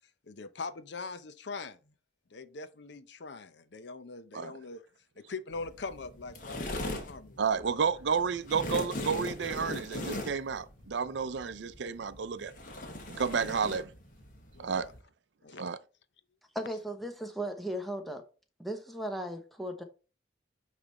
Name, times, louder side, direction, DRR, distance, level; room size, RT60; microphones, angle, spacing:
voice 1, 0.2-1.9 2.3-4.9 5.2-7.9 8.7-9.0 13.4-13.6 14.5-14.9 15.4-15.6, left 4 dB, 70° left, 0.6 m, -43 dB
sound 1, 5.5-15.0, left 1 dB, 45° left, 1.3 m, -40 dB
voice 2, 7.4-12.5 13.1-13.9 14.6-14.9 15.6-15.8, right 6 dB, 75° right, 0.5 m, -31 dB
voice 3, 16.5-18.3 18.6-19.8, right 1 dB, ahead, 0.8 m, -36 dB
8.8 x 3.3 x 4.1 m
head